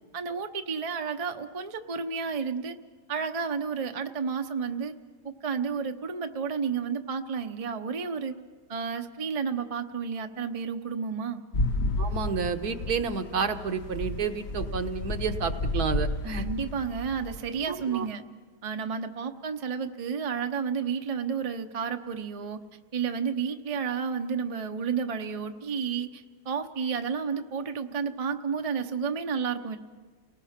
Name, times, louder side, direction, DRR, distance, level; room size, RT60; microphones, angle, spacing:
voice 1, 0.1-2.8 3.1-4.9 5.2-8.4 8.7-11.4 16.3-18.2 18.6-22.6 22.9-29.8, right 6 dB, 35° right, 6 dB, 0.6 m, -31 dB
sound 1, 11.5-18.0, left 2 dB, 45° left, 1.0 m, -32 dB
voice 2, 12.0-16.5 17.7-18.1, right 6 dB, 70° right, 7 dB, 1.5 m, -30 dB
29.5 x 19.5 x 5.8 m, 1.4 s
omnidirectional pair, 1.8 m